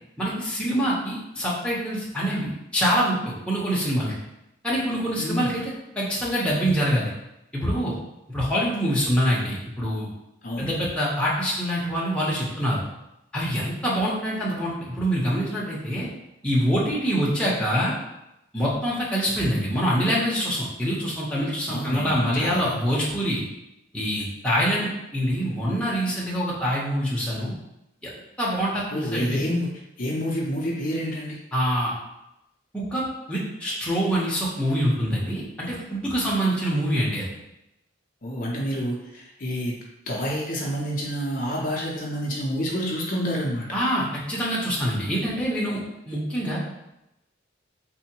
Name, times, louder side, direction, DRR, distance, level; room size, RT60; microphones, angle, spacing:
voice 1, 0.2-4.1 4.6-5.6 6.0-7.1 7.5-8.0 8.3-10.1 10.6-12.8 13.3-16.1 16.4-17.9 18.5-23.4 23.9-27.5 28.4-29.4 31.5-31.9 32.7-33.0 33.3-37.3 43.7-45.8 46.1-46.6, equal, 5° left, -6 dB, 0.7 m, -25 dB
voice 2, 5.2-5.6 10.4-10.7 21.7-22.7 28.9-29.7 30.0-31.4 38.2-39.7 40.1-43.7, equal, 45° left, -3 dB, 0.5 m, -28 dB
3.7 x 2.1 x 4.4 m, 0.88 s
head